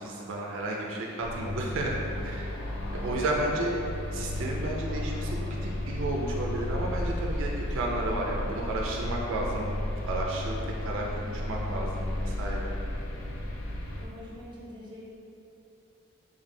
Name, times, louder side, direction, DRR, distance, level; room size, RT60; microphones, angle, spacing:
voice 1, 0.0-1.9 2.2-2.5 2.9-3.7 4.1-9.7 10.1-12.7, right 2 dB, 80° right, -2 dB, 0.4 m, -32 dB
sound 1, 1.2-14.1, left 1 dB, 75° left, 0.4 m, -33 dB
voice 2, 2.9-3.3 14.0-15.1, equal, 25° right, -5 dB, 0.5 m, -44 dB
3.2 x 2.6 x 3.2 m, 2.8 s
head